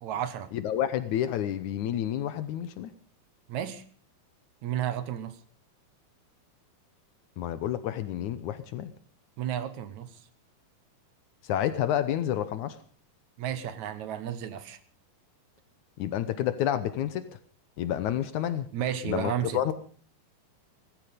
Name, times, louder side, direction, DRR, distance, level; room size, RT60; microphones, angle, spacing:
voice 1, 0.0-0.5 3.5-3.8 4.6-5.4 9.4-10.2 13.4-14.8 18.7-19.7, right 10 dB, 65° right, 2.2 m, -32 dB
voice 2, 0.5-2.9 7.4-8.9 11.4-12.8 16.0-17.3 17.8-18.7 19.0-19.7, left 11 dB, 70° left, 2.1 m, -29 dB
17.5 x 15.5 x 5.2 m
omnidirectional pair, 4.0 m